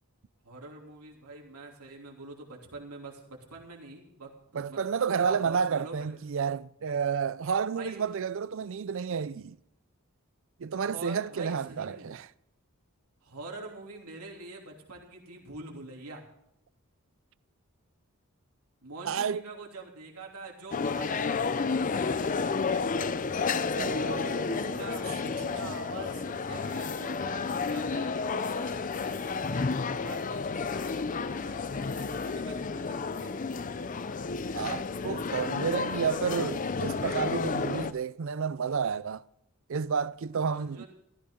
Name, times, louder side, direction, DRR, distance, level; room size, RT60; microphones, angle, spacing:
voice 1, 0.4-4.8 5.2-6.2 7.7-8.0 10.8-12.1 13.2-16.2 18.8-22.4 24.4-29.7 30.0-33.7 40.5-40.9, right 3 dB, 85° right, 3.1 m, -45 dB
voice 2, 4.5-9.6 10.6-12.3 19.0-19.4 22.8-24.8 25.6-25.7 34.5-39.2 39.7-40.8, right 6 dB, 60° right, 0.4 m, -31 dB
sound 1, 20.7-37.9, left 4 dB, 35° left, 0.5 m, -31 dB
14.5 x 14.5 x 3.8 m
head